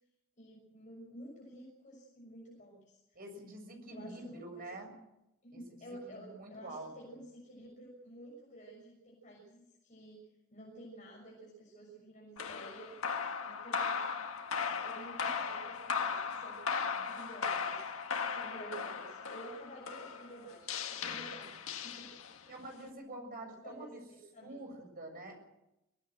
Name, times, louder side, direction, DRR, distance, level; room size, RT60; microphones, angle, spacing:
voice 1, 0.4-3.2 3.9-4.6 5.4-12.9 13.4-14.0 14.8-16.6 16.9-17.9 18.3-22.1 22.4-22.7 23.6-24.7, right 1 dB, 40° left, -3 dB, 6.5 m, -51 dB
voice 2, 3.1-4.9 5.5-7.2 22.5-24.0 24.4-25.4, right 1 dB, 45° right, 4 dB, 7.2 m, -47 dB
sound 1, 12.4-22.5, left 5 dB, 90° left, 1.9 m, -37 dB
24.0 x 18.0 x 7.9 m, 0.90 s
head